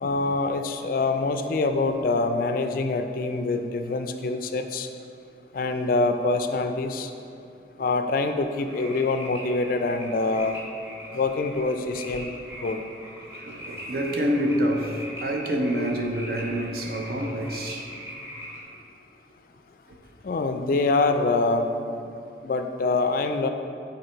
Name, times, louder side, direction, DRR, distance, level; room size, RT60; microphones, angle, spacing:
voice 1, 0.0-4.9 5.5-7.1 7.8-10.6 11.1-12.8 20.2-21.7 22.4-23.5, left 3 dB, 50° left, 0.3 m, -25 dB
sound 1, 8.5-18.6, equal, 15° right, 1.1 m, -41 dB
voice 2, 13.4-17.8, equal, 55° right, 0.6 m, -27 dB
6.6 x 4.1 x 4.4 m
head